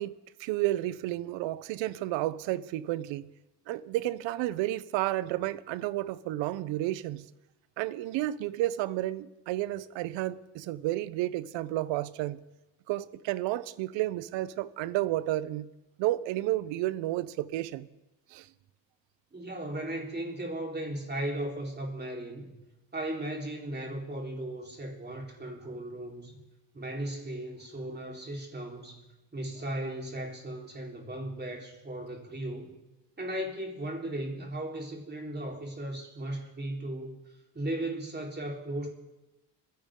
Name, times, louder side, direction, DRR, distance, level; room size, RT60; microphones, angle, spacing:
voice 1, 0.0-3.3 3.7-7.2 7.8-12.4 12.9-15.7 16.0-17.9 18.3-18.5, right 15 dB, 75° right, 0.8 m, -31 dB
voice 2, 19.3-22.5 22.9-26.4 26.7-29.1 29.3-32.7 33.2-37.2 37.5-38.9, right 1 dB, 20° right, 4.1 m, -36 dB
30.0 x 10.5 x 3.8 m
supercardioid pair, 80°, 45 cm